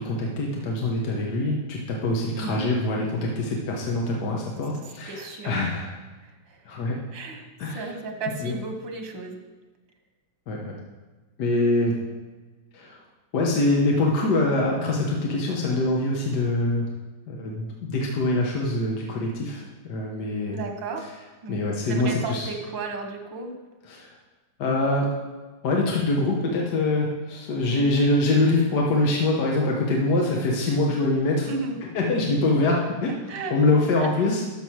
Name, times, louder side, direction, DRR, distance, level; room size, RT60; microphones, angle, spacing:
voice 1, 0.0-5.9 6.7-7.0 7.6-7.9 8.4-8.5 10.5-10.8 11.4-12.0 12.7-13.0 13.3-16.9 17.3-20.6 21.5-22.5 23.9-24.1 24.6-25.1 25.6-31.5 31.9-33.1 33.5-34.4, left 2 dB, 65° left, -1 dB, 1.7 m, -24 dB
voice 2, 2.3-2.7 5.1-5.5 6.2-6.7 7.1-7.5 7.7-9.4 20.5-21.1 21.4-21.6 21.9-23.5 31.5-31.8 33.3-34.1, right 3 dB, 90° right, 4 dB, 1.9 m, -34 dB
13.0 x 6.7 x 4.6 m, 1.3 s
omnidirectional pair, 2.0 m